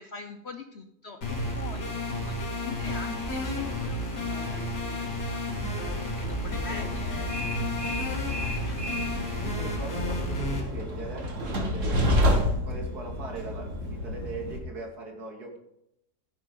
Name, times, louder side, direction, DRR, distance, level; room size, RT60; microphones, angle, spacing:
voice 1, 0.0-5.4 6.1-7.6 8.3-8.9 11.6-11.8, left 4 dB, 50° left, 6 dB, 0.9 m, -43 dB
sound 1, 1.2-10.6, left 1 dB, 80° left, 3.3 m, -32 dB
Train, 6.2-14.6, equal, 50° right, 2.0 m, -30 dB
voice 2, 6.5-7.0 8.8-9.1 9.4-11.3 11.6-12.3 12.6-15.6, right 2 dB, 65° right, 1 dB, 3.0 m, -40 dB
15.5 x 9.4 x 4.0 m, 0.81 s
omnidirectional pair, 1.8 m